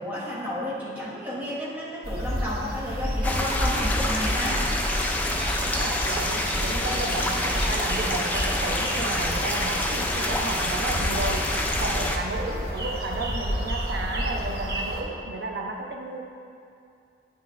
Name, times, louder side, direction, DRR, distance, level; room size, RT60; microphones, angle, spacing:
voice 1, 0.0-4.6, equal, 10° right, -7 dB, 0.9 m, -32 dB
sound 1, 2.0-15.0, equal, 60° right, 0.8 m, -30 dB
sound 2, 3.2-12.2, left 1 dB, 10° left, 0.3 m, -27 dB
voice 2, 5.6-11.5 11.8-16.2, right 2 dB, 85° right, 2 dB, 0.5 m, -33 dB
8.6 x 5.9 x 2.4 m, 2.5 s
head